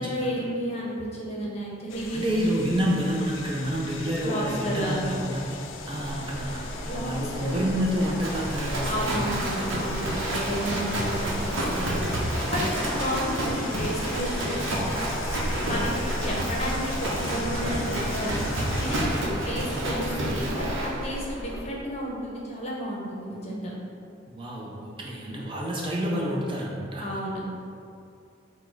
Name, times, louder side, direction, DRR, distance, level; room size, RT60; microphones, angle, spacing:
voice 1, 0.0-2.2 4.2-5.1 6.8-7.5 7.9-8.0 8.8-15.0 15.6-15.9 16.2-23.7 27.0-27.4, equal, 35° left, -3 dB, 0.7 m, -32 dB
sound 1, 1.9-19.1, left 6 dB, 85° left, 0.3 m, -42 dB
voice 2, 2.1-5.4 5.9-6.6 6.9-9.7 13.4-13.5 24.3-27.2, equal, 25° right, -3 dB, 0.4 m, -29 dB
sound 2, 4.5-19.4, equal, 50° right, 1.4 m, -40 dB
Livestock farm animals working animals, 6.0-21.6, right 1 dB, 85° right, 0.8 m, -30 dB
4.2 x 2.2 x 4.5 m, 2.5 s
head